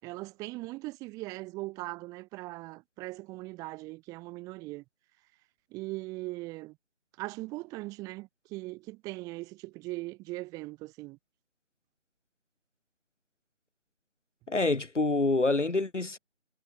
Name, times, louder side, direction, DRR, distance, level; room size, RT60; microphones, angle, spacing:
voice 1, 0.0-4.8 5.7-6.8 7.2-11.2, right 21 dB, 10° right, 3.7 m, -40 dB
voice 2, 14.5-16.2, left 3 dB, 85° left, 5.3 m, -26 dB
figure-of-eight pair, 165°, 35 cm